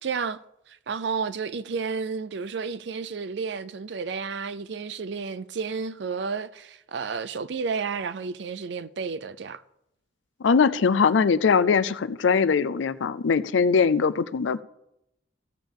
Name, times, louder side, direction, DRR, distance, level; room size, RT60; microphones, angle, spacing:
voice 1, 0.0-0.4 0.9-9.6, right 5 dB, 70° right, 0.5 m, -31 dB
voice 2, 10.4-14.6, left 5 dB, 85° left, 0.4 m, -21 dB
16.0 x 7.0 x 3.7 m
head